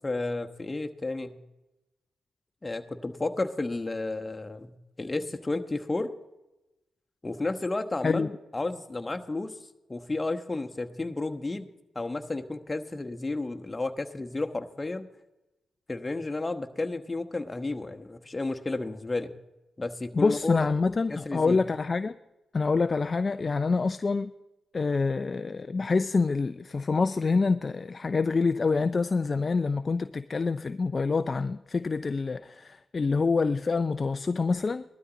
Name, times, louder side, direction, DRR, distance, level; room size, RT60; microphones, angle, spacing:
voice 1, 0.0-1.4 2.6-6.1 7.2-9.5 9.9-11.7 11.9-15.1 15.9-19.3 19.8-20.7 21.1-21.6, left 2 dB, 25° left, 1.1 m, -32 dB
voice 2, 20.1-22.2 22.5-24.3 24.7-34.8, left 4 dB, 45° left, 0.4 m, -26 dB
18.5 x 12.5 x 4.0 m
hypercardioid pair, 40°, 0 cm